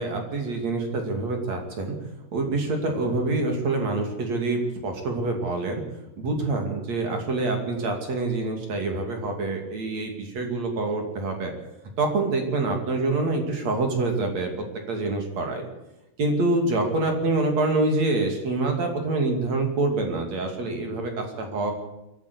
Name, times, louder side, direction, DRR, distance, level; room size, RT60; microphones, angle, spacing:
voice 1, 0.0-2.0 2.3-5.8 6.2-11.5 12.0-14.5 14.9-15.7 16.2-21.7, right 2 dB, 45° right, 3 dB, 3.4 m, -26 dB
22.5 x 14.0 x 8.4 m, 0.93 s
omnidirectional pair, 4.9 m